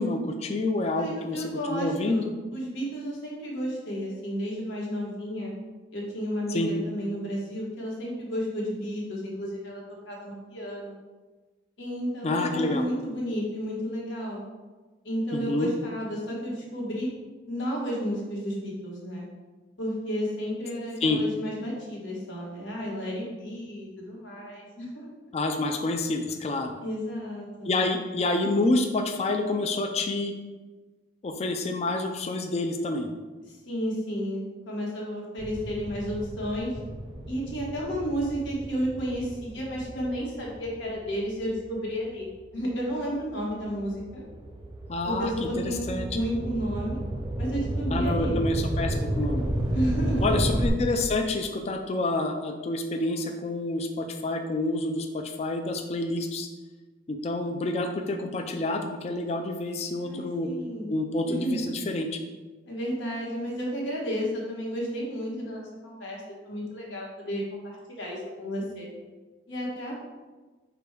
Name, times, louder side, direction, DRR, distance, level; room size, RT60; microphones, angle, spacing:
voice 1, 0.0-2.2 6.5-6.7 12.2-12.8 15.3-15.7 21.0-21.2 25.3-26.7 27.6-30.3 31.2-33.1 44.9-46.1 47.9-49.4 50.2-56.5 57.1-60.5 60.9-62.1, left 2 dB, 35° left, 5 dB, 0.3 m, -28 dB
voice 2, 0.9-5.5 5.9-11.0 11.8-14.4 15.0-17.1 17.5-19.3 19.8-25.1 26.8-27.8 33.5-36.7 37.3-42.3 42.5-44.2 45.1-47.0 47.4-48.4 49.7-50.4 60.0-60.9 61.3-61.6 62.7-68.9 69.5-70.0, equal, 90° left, -3 dB, 1.3 m, -32 dB
sound 1, 35.4-42.1 42.7-50.7, right 1 dB, 25° right, 0.5 m, -32 dB
5.1 x 2.2 x 4.5 m, 1.3 s
head